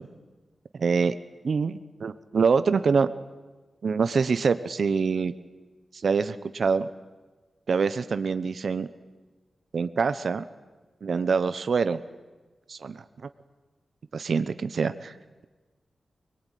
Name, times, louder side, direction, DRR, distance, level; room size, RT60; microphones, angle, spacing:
voice 1, 0.7-1.1 1.4-3.1 3.8-5.3 6.0-6.9 7.7-8.9 9.7-10.4 11.0-12.0 12.7-13.3 14.1-15.1, right 5 dB, 65° right, 12 dB, 0.9 m, -25 dB
23.0 x 21.5 x 9.3 m, 1.3 s
wide cardioid pair, 105°, 0 cm